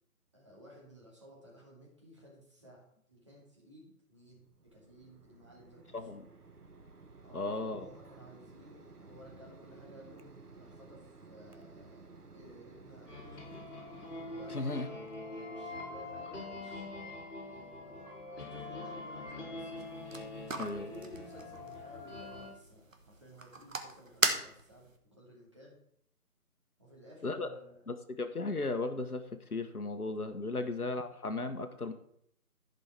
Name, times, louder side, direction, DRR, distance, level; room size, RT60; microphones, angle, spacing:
voice 1, 0.3-4.4 4.7-6.1 7.2-13.6 14.3-19.9 20.8-25.8 26.8-27.8 30.5-30.8, equal, 20° right, -4 dB, 2.3 m, -56 dB
Mechanisms, 4.2-15.2, right 3 dB, 75° right, 1.5 m, -55 dB
voice 2, 7.3-7.9 14.5-14.9 20.6-20.9 27.2-27.5 27.9-31.9, left 3 dB, 70° left, 8 dB, 1.4 m, -36 dB
sound 1, 13.1-22.5, left 2 dB, 50° left, 5.2 m, -44 dB
sound 2, 19.8-25.0, right 3 dB, 55° right, 1.6 m, -38 dB
15.0 x 5.5 x 4.6 m, 0.69 s
figure-of-eight pair, 170°, 46 cm